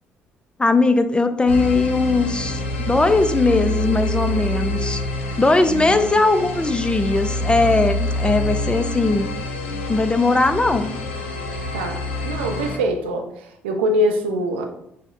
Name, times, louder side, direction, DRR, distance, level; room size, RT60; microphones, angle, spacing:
voice 1, 0.6-5.0 5.4-9.3 9.9-10.9, left 3 dB, 15° left, 10 dB, 0.4 m, -19 dB
sound 1, 1.5-12.8, left 1 dB, 80° left, 0.5 m, -26 dB
voice 2, 5.6-6.1 11.7-14.6, equal, 75° right, 4 dB, 0.5 m, -24 dB
6.1 x 2.1 x 2.6 m, 0.75 s
figure-of-eight pair, 45°, 6 cm